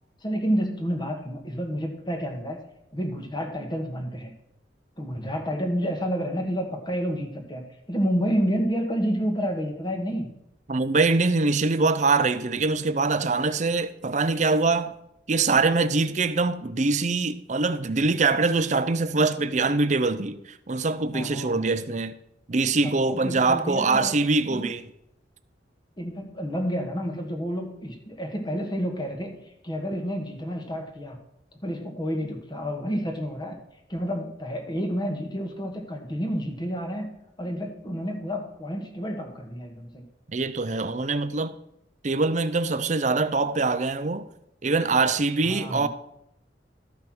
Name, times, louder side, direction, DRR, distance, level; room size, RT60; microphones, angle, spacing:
voice 1, 0.2-2.6 2.9-4.3 5.0-10.3 21.1-21.6 22.8-24.1 24.5-24.7 26.0-29.3 29.6-31.2 31.6-33.6 33.9-37.1 37.4-40.0 45.4-45.9, equal, 25° left, 1.5 m, -29 dB
voice 2, 10.7-14.9 15.3-22.1 22.5-24.9 40.3-41.6 42.0-44.3 44.6-45.9, right 3 dB, 40° right, 0.6 m, -23 dB
13.0 x 5.5 x 6.0 m
head